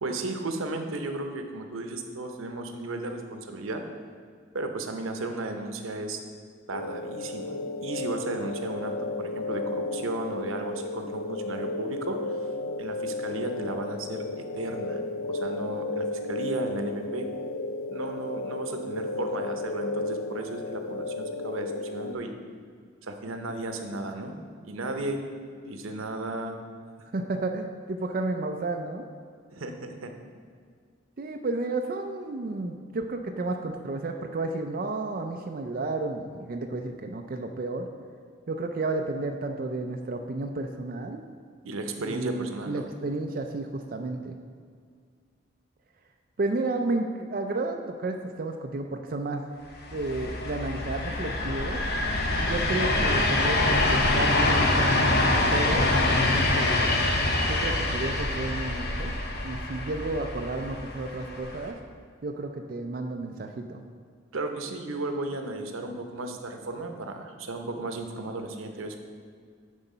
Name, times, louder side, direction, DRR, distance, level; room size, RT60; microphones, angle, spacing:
voice 1, 0.0-3.8 4.5-6.2 6.7-7.5 7.8-12.2 12.8-14.2 14.5-15.0 15.3-17.3 17.9-22.3 23.0-24.3 24.6-25.2 25.6-26.6 29.5-30.1 41.6-42.9 64.3-69.0, right 2 dB, 90° right, 5 dB, 0.8 m, -34 dB
sound 1, 6.7-22.1, left 2 dB, 75° left, 0.4 m, -33 dB
voice 2, 27.1-29.1 31.2-37.9 38.5-41.2 42.0-44.4 46.4-49.5 49.9-51.8 52.4-55.2 55.5-55.9 56.1-56.8 57.5-59.1 59.4-61.7 62.2-63.8, right 2 dB, 45° right, 3 dB, 0.4 m, -32 dB
sound 2, 49.8-61.7, left 2 dB, 50° left, 0.9 m, -25 dB
9.8 x 4.0 x 5.5 m, 2.1 s
head